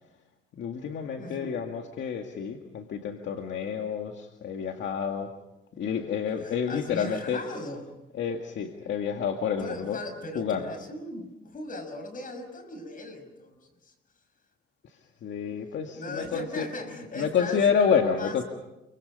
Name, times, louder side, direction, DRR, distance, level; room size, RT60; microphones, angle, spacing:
voice 1, 0.5-5.3 5.7-7.6 8.1-10.0 10.3-10.8 14.8-18.4, left 7 dB, 70° left, 4 dB, 2.1 m, -29 dB
voice 2, 1.2-1.6 6.4-7.9 9.6-13.9 15.9-17.6 18.2-18.4, left 1 dB, 45° left, 8 dB, 5.9 m, -38 dB
28.5 x 24.5 x 5.5 m, 0.96 s
cardioid pair, 90°, 20 cm